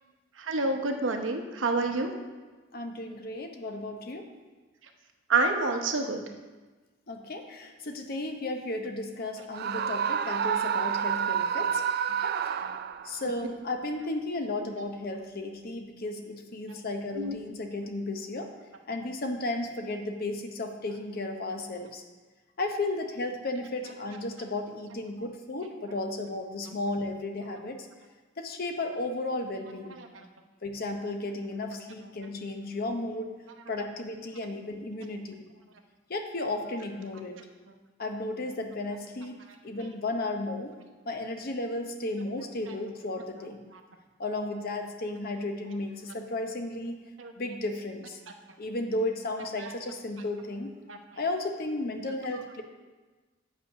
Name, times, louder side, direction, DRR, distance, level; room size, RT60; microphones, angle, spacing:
voice 1, 0.5-2.1 5.3-6.2 17.2-17.4 47.2-47.3 49.6-49.7 50.9-51.0, right 3 dB, 85° right, 4 dB, 0.9 m, -27 dB
voice 2, 2.7-4.3 7.1-11.8 12.1-12.7 13.0-18.5 18.9-22.0 22.6-27.9 28.4-30.0 30.6-33.3 33.7-35.5 36.1-37.4 38.0-40.8 41.1-43.6 44.2-47.0 47.4-48.2 48.6-50.7 51.2-52.6, left 2 dB, 50° left, 5 dB, 0.8 m, -34 dB
Screaming, 9.5-13.2, right 8 dB, 55° right, 0.3 m, -29 dB
8.3 x 5.0 x 5.6 m, 1.3 s
head